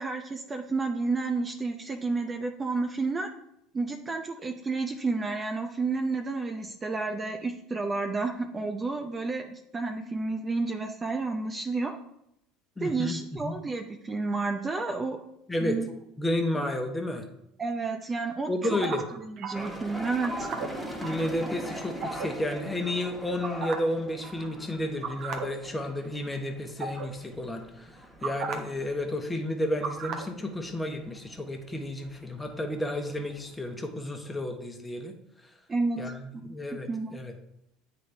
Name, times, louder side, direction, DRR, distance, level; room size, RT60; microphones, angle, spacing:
voice 1, 0.0-3.3 3.7-11.9 12.8-15.2 15.6-15.9 17.6-18.5 18.8-18.9 19.3-20.5 35.7-36.0 36.3-37.2, right 3 dB, 25° right, 4 dB, 0.7 m, -31 dB
voice 2, 12.8-13.2 13.4-13.5 15.5-15.8 16.2-17.3 18.5-19.0 21.0-35.1 35.4-35.5 36.0-37.3, left 1 dB, 15° left, 4 dB, 1.2 m, -32 dB
sound 1, 18.6-19.7 20.2-21.3 22.0-22.3 23.4-24.0 24.2-24.5 25.0-25.5 25.8-26.1 26.8-27.1 28.2-28.5 29.8-30.3, right 5 dB, 55° right, 1.0 m, -35 dB
sound 2, 19.5-33.8, equal, 5° right, 1.4 m, -42 dB
9.1 x 4.0 x 3.4 m, 0.80 s
hypercardioid pair, 75°, 0 cm